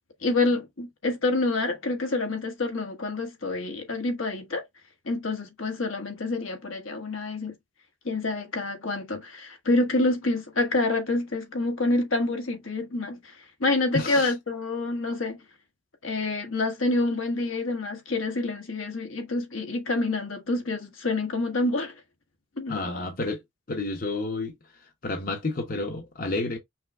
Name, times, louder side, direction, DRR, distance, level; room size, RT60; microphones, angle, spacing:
voice 1, 0.2-4.6 5.0-7.5 8.0-13.3 13.6-15.4 16.0-22.0 22.6-23.0, left 2 dB, 80° left, 1.3 m, -27 dB
voice 2, 13.9-14.3 22.7-23.4 23.7-24.5 24.8-26.6, left 2 dB, 45° left, 0.7 m, -30 dB
5.6 x 2.0 x 3.5 m
head